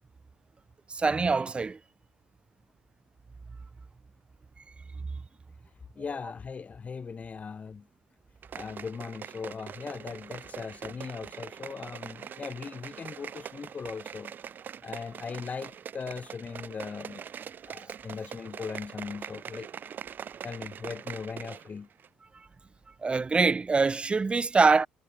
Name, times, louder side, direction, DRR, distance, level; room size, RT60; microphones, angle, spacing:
voice 1, 0.9-1.8 23.0-24.9, right 4 dB, 25° right, 0.8 m, -24 dB
voice 2, 6.0-7.8 8.5-14.3 14.8-17.2 17.6-19.7 20.4-21.9, left 5 dB, 35° left, 1.4 m, -39 dB
sound 1, 8.4-21.7 22.0-22.1, right 8 dB, 50° right, 7.0 m, -43 dB
hypercardioid pair, 55°, 4 cm